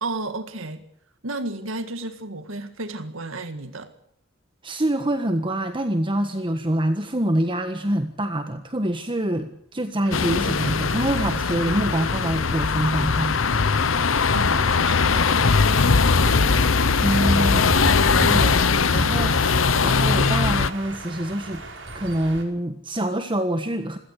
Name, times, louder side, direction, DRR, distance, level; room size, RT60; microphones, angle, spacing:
voice 1, 0.0-0.9 1.2-3.9 14.3-17.6, right 2 dB, 85° right, 1.8 m, -34 dB
voice 2, 4.6-13.4 17.0-17.6 18.1-21.6 21.9-24.0, right 1 dB, 25° right, 1.4 m, -25 dB
sound 1, 10.0-22.4, right 1 dB, 65° right, 4.9 m, -33 dB
sound 2, 10.1-20.7, left 5 dB, 85° left, 0.9 m, -20 dB
27.0 x 17.0 x 6.6 m
head